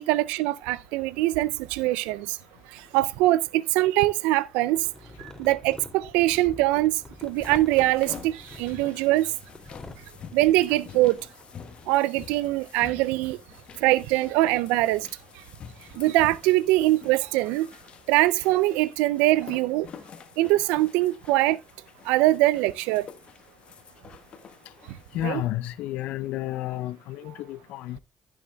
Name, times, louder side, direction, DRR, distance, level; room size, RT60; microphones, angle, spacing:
voice 1, 0.0-2.4 2.9-4.8 5.4-7.0 7.2-9.3 10.3-11.2 11.9-13.4 13.8-15.1 16.0-17.7 18.1-19.9 20.4-21.6 22.1-23.1 25.2-25.4, right 17 dB, 80° right, 0.4 m, -23 dB
sound 1, 2.9-3.8 4.5-12.3, left 2 dB, 25° left, 2.6 m, -47 dB
sound 2, 6.9-25.3, left 7 dB, 55° left, 1.3 m, -48 dB
voice 2, 25.1-28.0, left 14 dB, 75° left, 0.6 m, -31 dB
15.0 x 7.2 x 2.3 m
hypercardioid pair, 50°, 2 cm